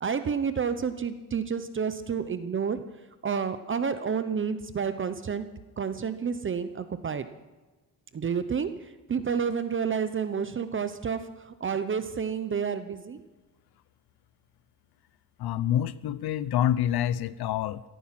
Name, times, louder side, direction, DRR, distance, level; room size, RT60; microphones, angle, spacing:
voice 1, 0.0-2.8 3.2-5.5 5.8-7.3 8.1-13.2, right 6 dB, 30° right, 11 dB, 0.8 m, -30 dB
voice 2, 15.4-17.8, left 11 dB, 70° left, 17 dB, 0.9 m, -27 dB
17.0 x 14.5 x 5.9 m, 1.2 s
cardioid pair, 125°, 39 cm